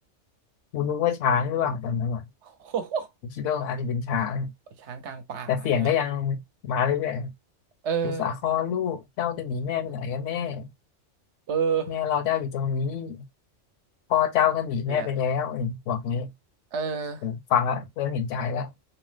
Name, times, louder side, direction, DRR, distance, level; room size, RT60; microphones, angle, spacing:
voice 1, 0.7-2.2 3.4-4.5 5.5-7.3 8.0-10.7 11.9-13.2 14.1-16.3 17.2-18.7, left 8 dB, 75° left, 0.9 m, -26 dB
voice 2, 2.4-3.1 4.8-5.9 7.8-8.3 11.5-12.0 14.9-15.1 16.7-17.3, right 6 dB, 70° right, 0.9 m, -30 dB
2.9 x 2.0 x 3.2 m
omnidirectional pair, 1.3 m